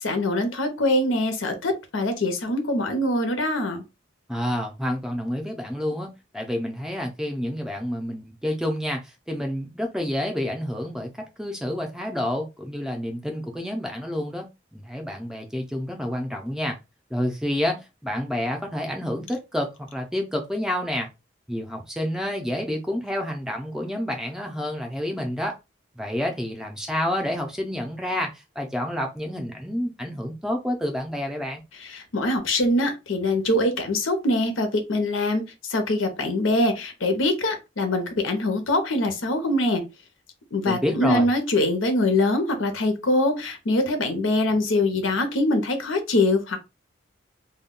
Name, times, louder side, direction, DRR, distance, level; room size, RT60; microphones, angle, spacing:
voice 1, 0.0-3.8 31.8-35.4 35.7-39.8 40.5-46.6, left 1 dB, 85° left, 0.7 m, -23 dB
voice 2, 4.3-6.1 6.3-9.0 9.3-11.1 11.4-14.5 14.7-16.8 17.1-17.8 18.0-21.1 21.5-25.6 26.0-31.6 40.6-41.3, left 1 dB, 5° right, 0.4 m, -29 dB
2.2 x 2.2 x 3.6 m
head